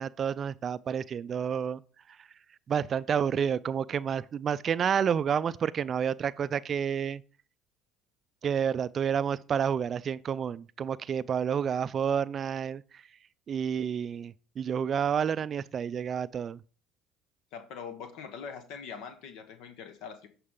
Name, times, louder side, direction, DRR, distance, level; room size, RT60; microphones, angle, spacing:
voice 1, 0.0-1.8 2.1-2.3 2.7-7.2 8.4-13.1 13.5-16.6, right 8 dB, 40° right, 0.3 m, -30 dB
voice 2, 17.5-20.3, left 6 dB, 70° left, 0.9 m, -42 dB
11.5 x 4.7 x 3.7 m
supercardioid pair, 80°, 0 cm